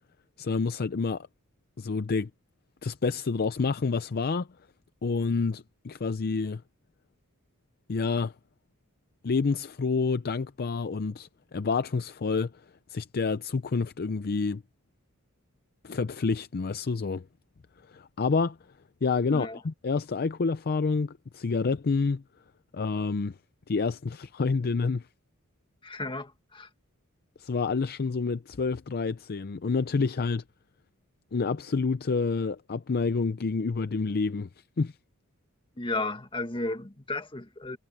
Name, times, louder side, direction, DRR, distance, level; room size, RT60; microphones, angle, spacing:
voice 1, 0.4-1.3 1.8-2.3 2.8-4.5 5.0-6.6 7.9-8.3 9.2-12.5 12.9-14.6 15.8-17.2 17.9-18.6 19.0-22.2 22.7-23.4 23.7-25.0 27.4-30.4 31.3-34.5 34.8-34.9, left 4 dB, 45° left, 0.5 m, -28 dB
voice 2, 19.3-19.6 25.8-26.7 35.8-37.8, left 2 dB, 25° left, 1.6 m, -34 dB
head